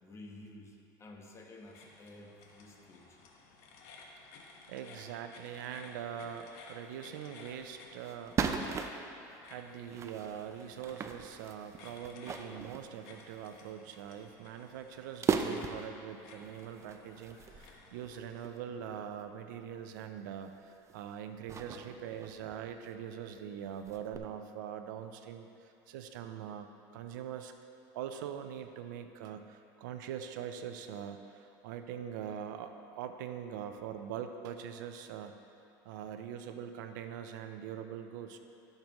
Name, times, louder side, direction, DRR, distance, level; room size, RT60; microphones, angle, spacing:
voice 1, 0.0-3.2, left 2 dB, 30° left, 1 dB, 1.2 m, -52 dB
sound 1, 1.6-18.5, left 3 dB, 75° left, 1.3 m, -56 dB
voice 2, 4.7-8.4 9.5-27.5 27.9-35.4 35.8-38.4, right 9 dB, 85° right, 7 dB, 0.6 m, -43 dB
sound 2, 6.9-7.0 7.4-7.5 8.0-9.3 9.9-13.6 14.0-14.2 14.6-14.7 15.2-16.0 16.4-18.6 19.2-19.3 20.0-20.2 20.5-21.0 21.5-23.0 23.3-23.4 23.7-24.2, right 6 dB, 30° right, 0.5 m, -38 dB
14.0 x 6.7 x 3.1 m, 2.8 s
supercardioid pair, 120°, 10 cm